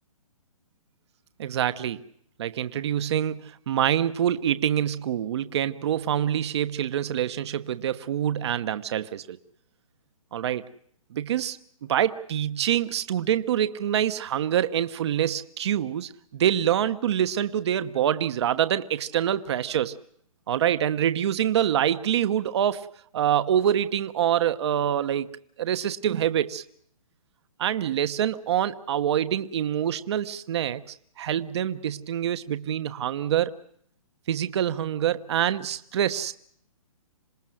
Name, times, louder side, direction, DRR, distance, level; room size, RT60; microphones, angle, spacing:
voice 1, 1.4-2.0 2.4-9.4 10.3-10.6 11.1-11.6 11.9-20.0 20.5-22.9 23.1-25.3 25.6-26.6 27.6-30.8 31.2-33.5 34.3-36.3, right 10 dB, 50° right, 1.1 m, -25 dB
27.0 x 19.0 x 7.7 m
hypercardioid pair, 155°, 18 cm